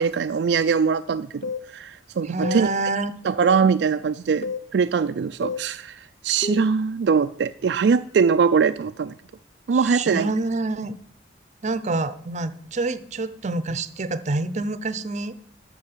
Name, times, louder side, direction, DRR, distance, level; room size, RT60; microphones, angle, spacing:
voice 1, 0.0-2.7 3.2-9.1 9.7-10.3, right 6 dB, 70° right, 0.4 m, -22 dB
sound 1, 1.4-1.7 2.4-2.7 3.4-3.7 4.4-4.7 5.4-5.7 6.4-6.7, left 5 dB, 45° left, 0.5 m, -30 dB
voice 2, 2.2-3.1 9.7-11.0 11.6-15.4, right 2 dB, 40° right, 0.7 m, -27 dB
12.5 x 6.1 x 6.7 m
head